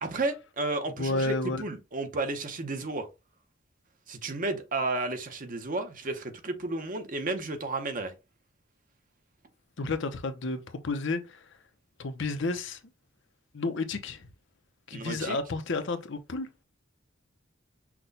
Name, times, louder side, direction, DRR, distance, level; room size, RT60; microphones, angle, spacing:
voice 1, 0.0-3.1 4.1-8.1 14.9-15.4, right 2 dB, 40° right, 0.7 m, -32 dB
voice 2, 1.0-1.6 9.8-11.5 12.0-12.8 13.5-14.3 14.9-16.5, left 3 dB, 60° left, 0.7 m, -31 dB
5.9 x 2.2 x 3.9 m
head